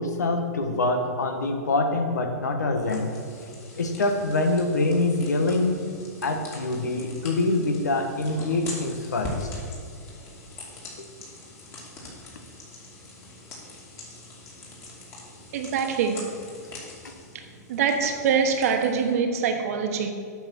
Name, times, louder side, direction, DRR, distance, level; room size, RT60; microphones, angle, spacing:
voice 1, 0.0-3.1 3.8-5.8 6.2-9.5 11.0-11.1 17.0-17.1, left 2 dB, 85° left, 5 dB, 1.3 m, -25 dB
sound 1, 2.8-19.1, left 1 dB, 30° left, 2.7 m, -42 dB
voice 2, 15.5-16.3 17.3-17.4 17.7-20.1, right 6 dB, 60° right, 5 dB, 1.2 m, -24 dB
8.7 x 6.0 x 6.0 m, 2.2 s
hypercardioid pair, 125°, 9 cm